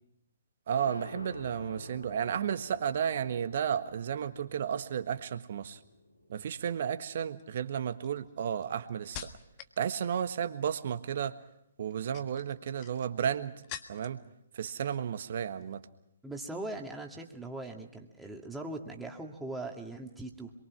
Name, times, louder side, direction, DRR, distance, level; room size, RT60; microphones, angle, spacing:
sound 1, 0.7-8.0, left 1 dB, 85° left, 5.0 m, -50 dB
voice 1, 0.7-5.8 6.3-9.3 9.8-11.3 11.8-13.5 13.9-14.2 14.5-15.8, right 8 dB, 50° right, 11 dB, 1.4 m, -33 dB
sound 2, 6.3-6.7 7.4-9.8 10.1-10.6 11.8-14.3 14.6-15.2 15.5-15.8, left 10 dB, 30° left, 1.6 m, -48 dB
voice 2, 16.2-20.5, right 2 dB, 5° right, 1 dB, 2.3 m, -40 dB
27.0 x 23.0 x 6.1 m, 0.80 s
figure-of-eight pair, 130°, 0 cm